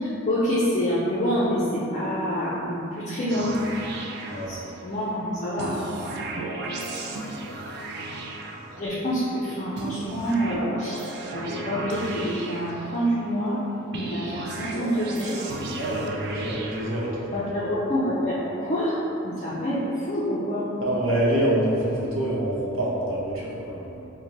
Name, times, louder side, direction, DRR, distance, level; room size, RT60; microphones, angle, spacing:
voice 1, 0.0-3.5 4.5-5.7 8.8-13.6 13.9-15.4 17.3-18.9 19.2-20.7, equal, 35° left, -10 dB, 0.5 m, -27 dB
sound 1, 3.3-5.0 5.6-9.2 9.8-13.4 13.9-17.4, right 2 dB, 55° right, 0.3 m, -35 dB
voice 2, 4.3-4.6 7.5-7.6 15.7-17.3 20.8-24.1, right 1 dB, 75° right, -5 dB, 0.7 m, -26 dB
3.0 x 2.2 x 3.8 m, 2.8 s
head